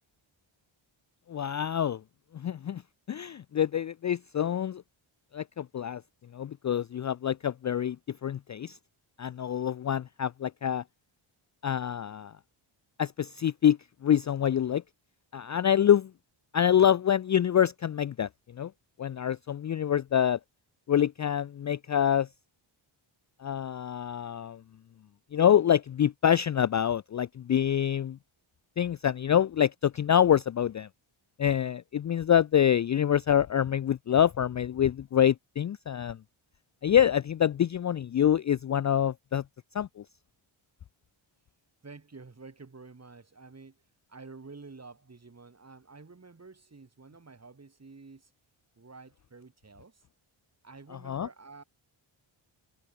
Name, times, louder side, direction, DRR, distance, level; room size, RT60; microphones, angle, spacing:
voice 1, 1.3-2.0 2.3-2.8 3.1-4.8 5.3-6.0 6.3-8.8 9.2-10.8 11.6-12.3 13.0-14.8 15.3-16.1 16.5-18.7 19.0-20.4 20.9-22.3 23.4-24.6 25.3-28.2 28.8-30.9 31.4-36.2 36.8-39.4 39.7-40.0 51.1-51.3, left 9 dB, 35° left, 0.4 m, -26 dB
voice 2, 41.8-43.8 44.1-48.3 48.8-50.0 50.6-51.6, right 4 dB, 30° right, 7.3 m, -50 dB
cardioid pair, 95°, 49 cm